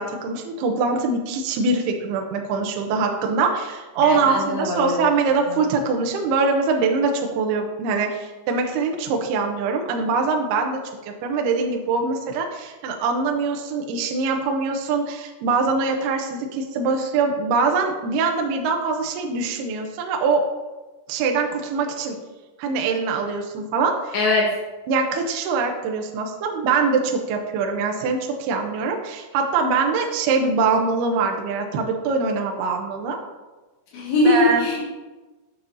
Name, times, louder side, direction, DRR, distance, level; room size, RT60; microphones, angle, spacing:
voice 1, 0.0-20.4 21.1-22.2 22.6-24.1 24.9-33.2 34.3-34.6, right 4 dB, 85° right, 2 dB, 2.3 m, -23 dB
voice 2, 4.0-5.0 24.1-24.5 33.9-34.9, left 2 dB, 70° left, -5 dB, 3.2 m, -21 dB
8.9 x 7.2 x 2.7 m, 1.2 s
omnidirectional pair, 5.5 m